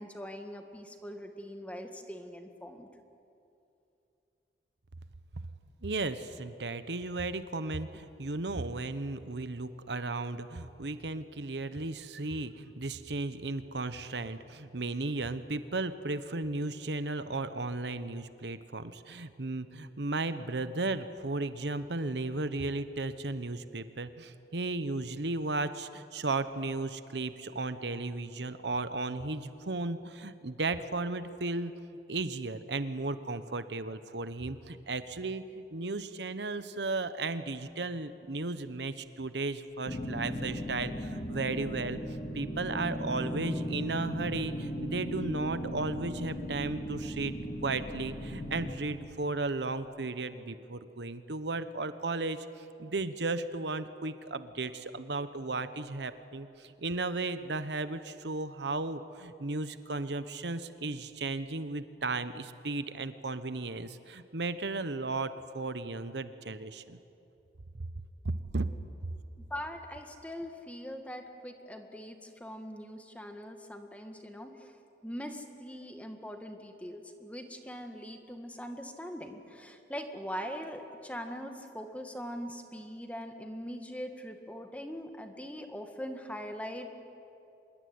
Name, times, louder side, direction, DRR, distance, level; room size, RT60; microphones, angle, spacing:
voice 1, 0.0-2.9 69.4-74.8 75.0-86.9, equal, 10° left, 5 dB, 1.9 m, -42 dB
voice 2, 5.8-42.0 42.3-47.3 47.6-52.5 52.8-67.0 68.5-68.7, right 3 dB, 75° right, 12 dB, 1.1 m, -35 dB
sound 1, 39.9-48.7, equal, 45° left, 4.1 m, -37 dB
25.5 x 22.0 x 9.6 m, 2.7 s
head